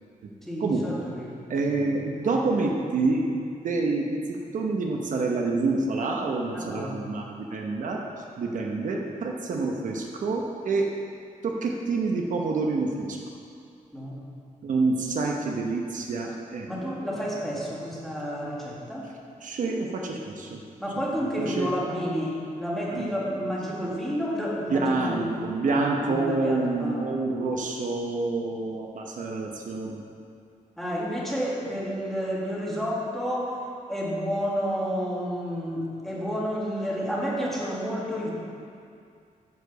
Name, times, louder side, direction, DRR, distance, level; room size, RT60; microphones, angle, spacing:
voice 1, 0.4-2.4 6.5-7.0 13.9-14.2 16.7-19.1 20.8-27.0 30.8-33.6 33.9-38.3, equal, ahead, -6 dB, 1.7 m, -31 dB
voice 2, 1.5-8.0 8.4-10.9 11.4-13.2 14.6-16.7 19.4-20.6 21.4-22.0 22.9-23.1 24.7-30.0, right 3 dB, 65° right, 0 dB, 0.9 m, -27 dB
9.6 x 5.0 x 6.7 m, 2.4 s
wide cardioid pair, 170°, 14 cm